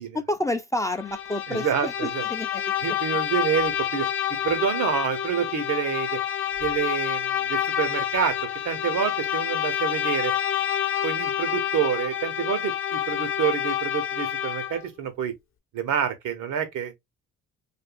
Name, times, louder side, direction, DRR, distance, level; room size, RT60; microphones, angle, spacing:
voice 1, 0.1-2.6, left 1 dB, 10° left, 0.4 m, -29 dB
Bowed string instrument, 1.0-14.9, left 11 dB, 45° left, 0.7 m, -28 dB
voice 2, 1.5-2.2 2.8-4.1 4.4-6.2 6.6-8.4 8.6-10.3 11.0-15.3 15.7-16.9, right 8 dB, 85° right, 0.9 m, -27 dB
2.8 x 2.5 x 2.4 m
cardioid pair, 90°, 30 cm